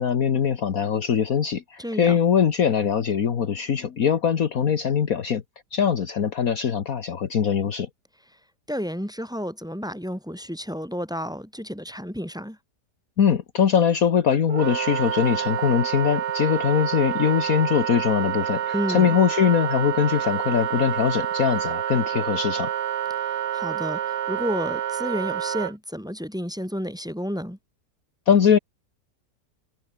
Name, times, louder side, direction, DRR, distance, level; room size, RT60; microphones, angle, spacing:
voice 1, 0.0-5.4 5.7-7.9 13.2-22.7 28.3-28.6, left 7 dB, 55° left, 1.7 m, -22 dB
voice 2, 1.8-2.2 8.7-12.6 18.7-19.2 23.2-27.6, equal, ahead, 6.6 m, -31 dB
Wind instrument woodwind instrument, 14.5-25.7, right 10 dB, 75° right, 1.6 m, -28 dB
omnidirectional pair, 1.8 m